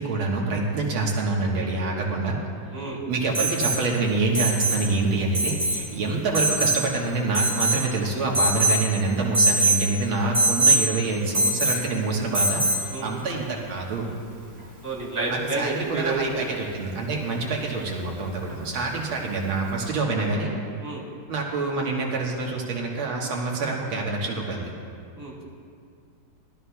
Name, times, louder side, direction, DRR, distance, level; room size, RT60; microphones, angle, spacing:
voice 1, 0.0-2.4 2.8-14.1 15.3-20.5 21.3-24.7, right 3 dB, 90° right, -2 dB, 2.3 m, -26 dB
Alarm, 3.3-3.8 4.3-4.8 5.3-5.8 6.3-6.8 7.3-7.9 8.3-8.8 9.3-9.8 10.3-10.8 11.3-11.8 12.3-12.8 14.6-14.7, right 2 dB, 25° right, 3.5 m, -22 dB
voice 2, 14.8-16.2 20.8-21.0 25.2-25.4, right 3 dB, 10° right, -7 dB, 2.8 m, -30 dB
20.0 x 13.0 x 2.3 m, 2.3 s
omnidirectional pair, 2.2 m